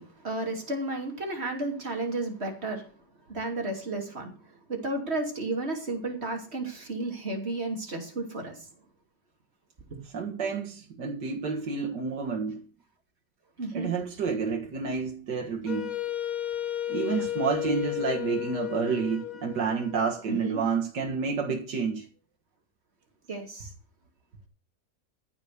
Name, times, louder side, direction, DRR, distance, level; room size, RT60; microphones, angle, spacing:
voice 1, 0.0-2.9 3.3-4.3 4.7-8.7 9.9-10.0 13.6-13.9 17.1-17.3 20.3-20.6 23.3-23.7, right 2 dB, 35° right, 3.1 m, -33 dB
voice 2, 10.1-12.6 13.7-15.9 16.9-22.1, right 5 dB, 70° right, 2.2 m, -29 dB
Wind instrument woodwind instrument, 15.6-20.6, left 12 dB, 25° left, 1.3 m, -34 dB
14.5 x 6.1 x 6.7 m
omnidirectional pair, 1.9 m